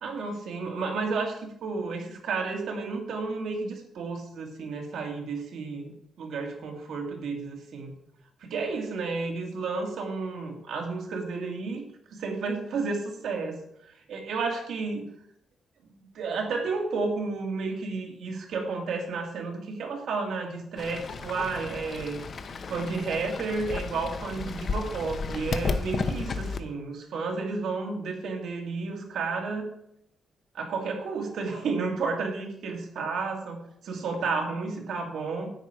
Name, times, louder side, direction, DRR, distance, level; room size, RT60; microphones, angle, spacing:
voice 1, 0.0-5.9 6.2-7.9 8.4-11.8 12.1-13.6 14.1-15.1 16.0-22.2 22.7-29.7 30.5-35.5, right 4 dB, 85° right, 3 dB, 2.3 m, -32 dB
Fowl / Bird, 20.8-26.6, left 4 dB, 40° left, 0.8 m, -33 dB
10.0 x 9.0 x 4.7 m, 0.75 s
wide cardioid pair, 160°, 0 cm